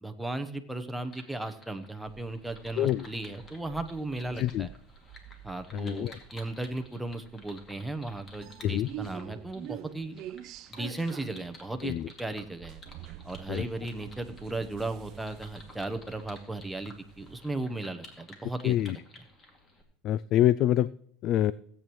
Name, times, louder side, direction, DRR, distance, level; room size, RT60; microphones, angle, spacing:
voice 1, 0.0-4.7 5.4-10.1 10.7-12.8 13.2-19.0, right 2 dB, 5° right, 7 dB, 0.9 m, -36 dB
sound 1, 1.0-19.8, left 2 dB, 25° left, 2.4 m, -54 dB
sound 2, 2.1-17.7, right 11 dB, 55° right, 0.5 m, -48 dB
voice 2, 4.4-4.7 5.7-6.2 8.6-8.9 11.8-12.1 13.5-13.7 18.6-19.0 20.0-20.9 21.2-21.5, left 12 dB, 50° left, 17 dB, 0.3 m, -26 dB
17.0 x 8.6 x 3.1 m, 0.65 s
supercardioid pair, 130°, 0 cm